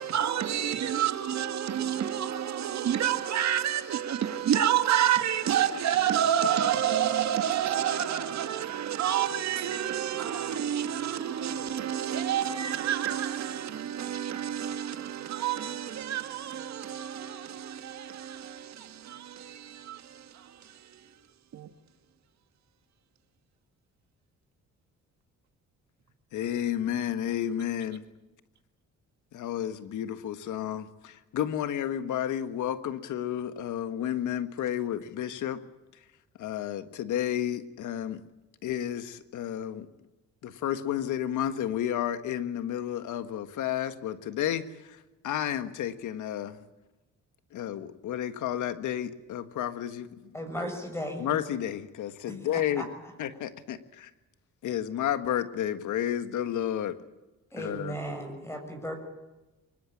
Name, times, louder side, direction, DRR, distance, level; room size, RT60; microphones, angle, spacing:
voice 1, 0.0-20.5 21.5-21.7, right 10 dB, 65° right, 1.9 m, -29 dB
voice 2, 26.3-28.0 29.3-35.6 36.4-38.2 38.6-39.9 40.4-45.0 45.2-46.6 47.5-50.3 51.2-52.8 53.2-54.1 54.6-57.0 57.6-58.0, left 10 dB, 75° left, 1.6 m, -31 dB
voice 3, 50.3-51.3 52.3-53.1 57.5-59.0, equal, 10° left, 6.9 m, -36 dB
23.5 x 21.0 x 8.7 m
cardioid pair, 90°, 30 cm